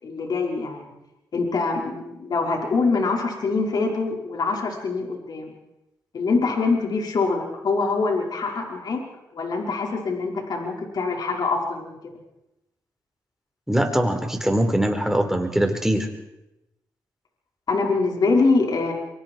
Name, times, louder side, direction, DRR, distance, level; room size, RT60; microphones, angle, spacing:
voice 1, 0.0-0.9 1.3-5.5 6.1-9.1 9.3-12.0 17.7-18.9, left 3 dB, 60° left, 0 dB, 5.6 m, -24 dB
voice 2, 13.7-16.1, right 1 dB, 5° right, 3 dB, 4.9 m, -22 dB
25.5 x 24.5 x 4.8 m, 0.90 s
cardioid pair, 65°, 8 cm